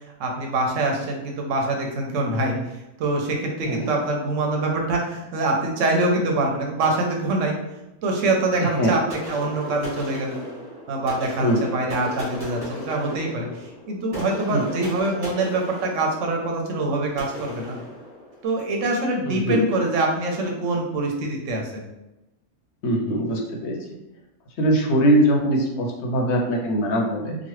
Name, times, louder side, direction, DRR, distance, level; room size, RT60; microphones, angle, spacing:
voice 1, 0.2-2.6 3.0-7.6 8.0-10.4 10.9-17.8 18.4-21.8, right 2 dB, 80° right, 1 dB, 1.0 m, -24 dB
voice 2, 8.6-8.9 11.4-11.6 14.5-14.6 19.3-19.6 22.8-23.8 24.6-27.4, right 1 dB, 70° left, 0 dB, 0.9 m, -21 dB
sound 1, 9.1-18.7, equal, 20° right, 1.3 m, -37 dB
3.0 x 2.2 x 3.0 m, 0.96 s
omnidirectional pair, 1.3 m